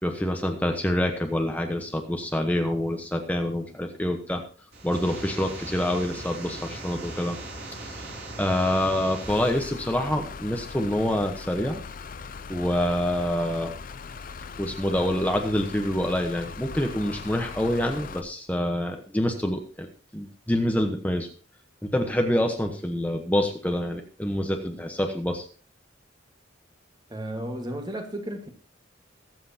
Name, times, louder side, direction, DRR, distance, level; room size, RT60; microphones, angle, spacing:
voice 1, 0.0-4.4 4.8-7.4 7.8-11.8 12.5-13.7 14.6-19.9 20.1-21.3 21.8-25.5, left 1 dB, 10° left, 1.1 m, -26 dB
sound 1, 4.7-9.7, right 2 dB, 55° right, 4.9 m, -39 dB
sound 2, 9.3-18.2, left 5 dB, 45° left, 0.6 m, -40 dB
voice 2, 27.1-28.5, right 1 dB, 20° right, 1.7 m, -33 dB
22.5 x 7.8 x 2.9 m
head